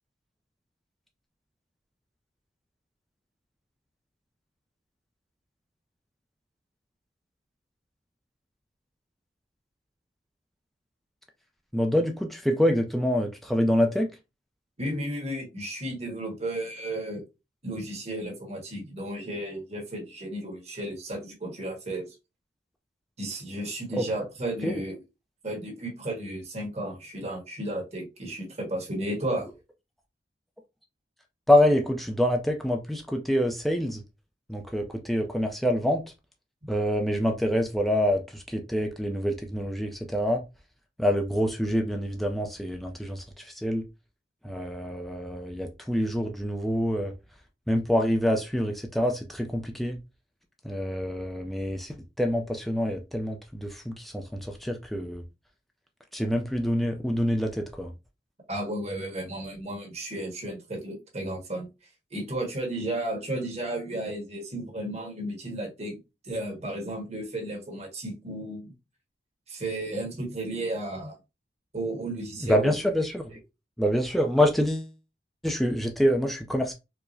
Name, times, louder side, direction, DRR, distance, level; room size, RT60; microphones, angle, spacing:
voice 1, 11.7-14.1 23.9-24.1 24.6-24.8 31.5-34.0 34.5-36.0 36.7-40.4 41.0-43.9 44.4-47.1 47.7-50.0 50.6-55.2 56.1-57.9 72.4-73.3 73.8-74.9 75.4-76.7, equal, ahead, 0.3 m, -26 dB
voice 2, 14.8-17.2 17.6-22.2 23.2-25.0 25.4-29.5 58.5-61.7 62.1-66.0 66.2-68.7 69.5-71.1 71.7-72.7, right 1 dB, 35° right, 1.4 m, -33 dB
4.6 x 2.0 x 2.5 m
head